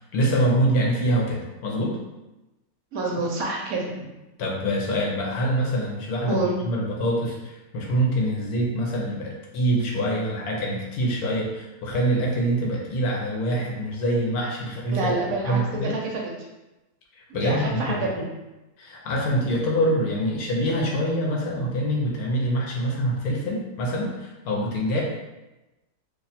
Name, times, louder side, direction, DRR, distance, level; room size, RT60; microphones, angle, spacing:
voice 1, 0.1-2.0 4.4-15.1 15.4-16.0 17.2-18.1 18.8-25.0, right 1 dB, 70° left, -2 dB, 1.2 m, -25 dB
voice 2, 2.9-4.1 6.3-6.5 14.9-16.3 17.3-18.2, right 2 dB, 70° right, -1 dB, 1.0 m, -28 dB
2.8 x 2.3 x 4.1 m, 1.0 s
omnidirectional pair, 1.7 m